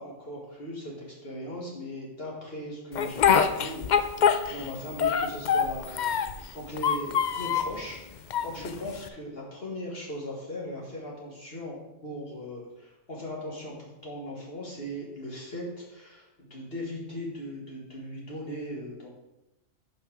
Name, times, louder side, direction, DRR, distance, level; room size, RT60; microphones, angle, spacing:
voice 1, 0.0-4.1 4.5-6.1 6.5-19.1, equal, 50° left, -4 dB, 1.8 m, -38 dB
Speech, 3.0-4.7 5.0-6.4 6.8-7.8 8.3-9.1, left 7 dB, 65° left, 0.4 m, -24 dB
5.7 x 5.6 x 6.0 m, 0.97 s
omnidirectional pair, 1.3 m